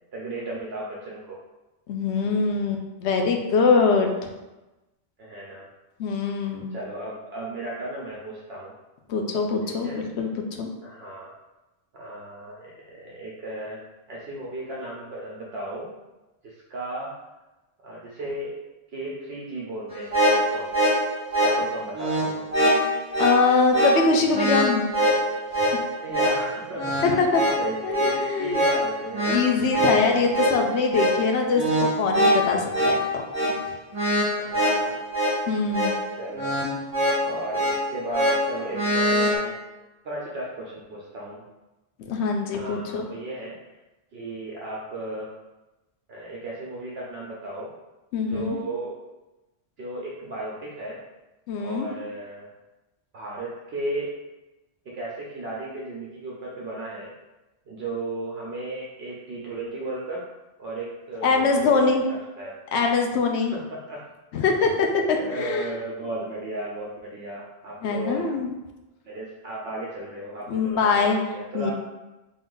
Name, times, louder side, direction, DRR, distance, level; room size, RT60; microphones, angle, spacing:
voice 1, 0.1-1.4 5.2-5.7 6.7-8.7 9.7-10.1 10.8-11.3 11.9-15.9 16.4-17.1 17.8-18.6 18.9-20.9 21.3-22.5 26.0-29.4 34.3-35.0 36.1-36.6 37.2-39.6 40.0-41.5 42.5-43.7 44.1-45.3 46.1-47.7 48.3-49.0 49.8-51.0 51.6-52.5 53.1-54.2 54.8-57.1 57.7-60.2 60.6-62.6 63.5-64.0 64.4-64.8 65.2-68.3 69.0-71.7, right 2 dB, 70° right, -5 dB, 0.9 m, -35 dB
voice 2, 1.9-4.1 6.0-6.7 9.1-10.3 10.6-10.7 23.2-24.9 25.6-25.7 27.0-27.4 27.8-28.6 29.3-33.2 35.5-35.9 42.1-43.1 48.1-48.6 51.5-51.9 61.2-62.0 62.7-63.5 64.3-65.7 67.8-68.5 70.5-71.2 71.5-71.7, left 4 dB, 85° left, 3 dB, 0.9 m, -23 dB
sound 1, 19.9-39.4, equal, 35° right, 1.2 m, -24 dB
3.7 x 2.5 x 3.8 m, 1.0 s
omnidirectional pair, 1.1 m